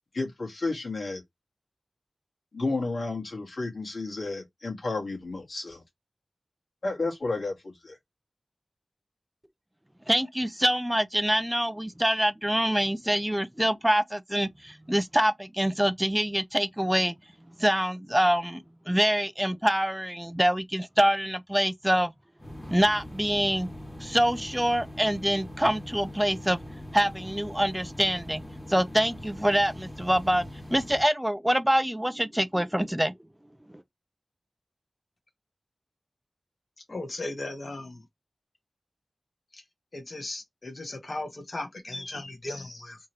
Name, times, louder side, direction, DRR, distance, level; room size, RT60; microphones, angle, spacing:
voice 1, 0.1-1.2 2.5-5.8 6.8-8.0, left 3 dB, 80° left, 1.8 m, -32 dB
voice 2, 10.1-17.2 17.6-22.1 22.7-23.7 24.0-26.6 26.9-28.4 28.7-30.4 30.7-33.1, equal, 10° right, 0.3 m, -25 dB
sound 1, 22.4-31.0, left 1 dB, 10° left, 1.2 m, -42 dB
voice 3, 36.9-38.0 39.5-39.6 39.9-43.0, left 2 dB, 60° left, 1.4 m, -37 dB
3.6 x 2.9 x 3.2 m
wide cardioid pair, 80°, 0 cm